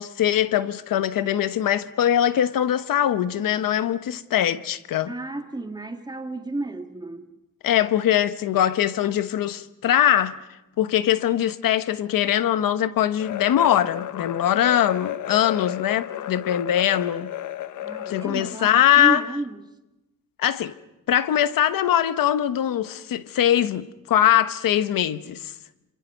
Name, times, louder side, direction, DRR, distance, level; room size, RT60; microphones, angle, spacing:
voice 1, 0.0-5.1 7.6-10.4 10.8-17.3 18.1-19.2 20.4-20.7 21.1-25.5, left 11 dB, 85° left, 1.1 m, -22 dB
voice 2, 5.1-7.3 17.8-19.6, right 2 dB, 10° right, 1.6 m, -32 dB
sound 1, 13.2-18.6, left 12 dB, 65° left, 0.8 m, -33 dB
28.0 x 26.5 x 5.4 m
cardioid pair, 130°, 33 cm